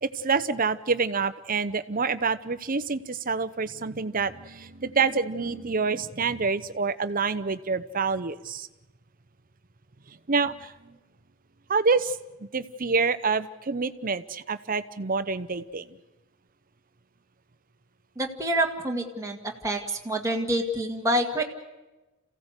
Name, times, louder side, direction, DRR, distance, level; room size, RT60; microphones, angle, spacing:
voice 1, 0.0-8.7 10.1-11.0 11.7-16.0, right 4 dB, 40° right, 13 dB, 0.8 m, -27 dB
voice 2, 18.2-19.4 19.6-19.8 20.1-21.4, right 1 dB, 15° right, 1 dB, 1.9 m, -26 dB
28.0 x 16.0 x 8.2 m, 1.1 s
head